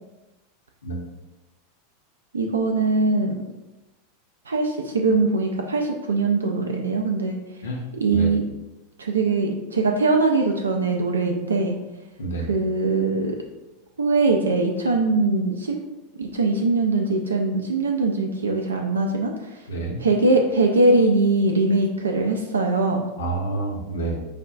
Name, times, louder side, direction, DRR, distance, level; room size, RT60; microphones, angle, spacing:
voice 1, 2.3-3.3 4.5-7.4 8.0-8.4 9.0-11.8 12.5-13.4 14.0-15.8 16.2-19.6 20.0-23.0, right 3 dB, 75° right, 2 dB, 0.3 m, -21 dB
voice 2, 12.2-12.5 19.7-20.0 23.2-24.3, right 2 dB, 65° left, 0 dB, 0.7 m, -28 dB
4.9 x 2.2 x 2.4 m, 1.0 s
figure-of-eight pair, 85°, 0 cm